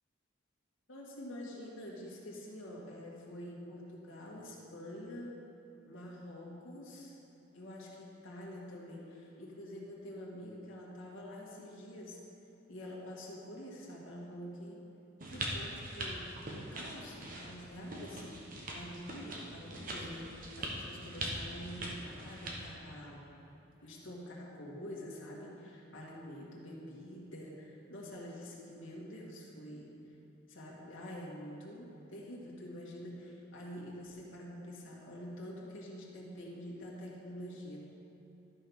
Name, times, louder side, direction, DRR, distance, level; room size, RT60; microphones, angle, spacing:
voice 1, 0.9-5.4 5.8-7.2 7.5-12.2 12.7-14.8 15.3-18.4 18.7-23.2 23.8-29.9 30.5-37.8, equal, 80° left, -4 dB, 1.8 m, -47 dB
sound 1, 15.2-22.7, right 1 dB, 45° right, 1.1 m, -42 dB
12.5 x 4.6 x 5.5 m, 2.8 s
head